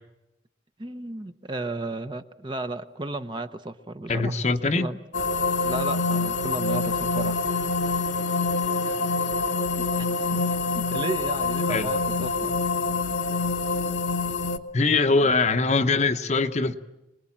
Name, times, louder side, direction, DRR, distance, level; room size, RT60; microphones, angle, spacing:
voice 1, 0.8-4.4 4.8-5.0 5.6-7.4 9.7-10.4 10.7-12.5 15.2-15.3, right 2 dB, 25° right, 8 dB, 0.8 m, -34 dB
voice 2, 4.1-4.9 11.7-11.9 12.2-12.3 14.7-16.8, left 3 dB, 35° left, 8 dB, 0.9 m, -22 dB
sound 1, 5.1-14.6, left 3 dB, 75° left, 1.2 m, -26 dB
26.0 x 20.5 x 8.7 m, 0.98 s
head